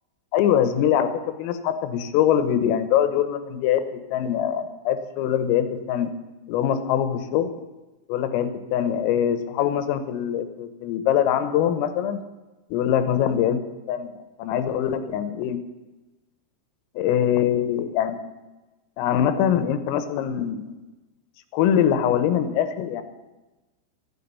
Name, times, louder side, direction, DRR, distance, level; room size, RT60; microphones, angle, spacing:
voice 1, 0.3-3.8 4.1-6.1 6.5-7.5 8.1-12.2 12.7-13.6 13.9-14.1 14.4-15.6 17.0-18.2 19.0-20.8 21.5-23.0, left 9 dB, 90° left, 9 dB, 3.7 m, -23 dB
15.5 x 9.8 x 8.5 m, 1.1 s
omnidirectional pair, 5.9 m